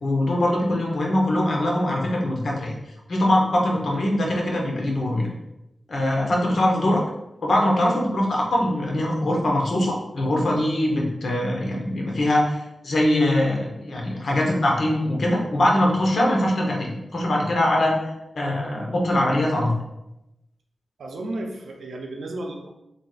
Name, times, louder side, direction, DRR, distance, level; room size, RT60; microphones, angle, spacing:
voice 1, 0.0-2.7 3.1-5.3 5.9-7.0 7.4-17.9 18.3-19.7, left 1 dB, 60° left, -1 dB, 0.8 m, -22 dB
voice 2, 21.0-22.7, right 1 dB, 90° right, 3 dB, 0.5 m, -33 dB
3.3 x 2.3 x 3.9 m, 0.90 s
wide cardioid pair, 170°, 0 cm